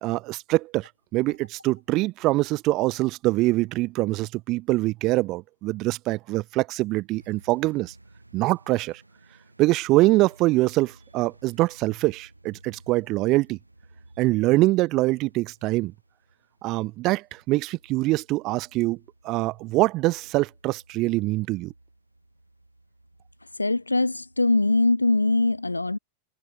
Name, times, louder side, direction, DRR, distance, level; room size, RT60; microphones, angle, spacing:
voice 1, 0.0-7.9 8.3-9.0 9.6-13.6 14.2-15.9 16.6-19.0 19.2-21.7, right 19 dB, 40° right, 0.9 m, -24 dB
sound 1, 7.1-25.1, right 2 dB, 85° right, 7.7 m, -56 dB
voice 2, 23.6-26.0, left 2 dB, 85° left, 0.3 m, -22 dB
figure-of-eight pair, 90°, 0 cm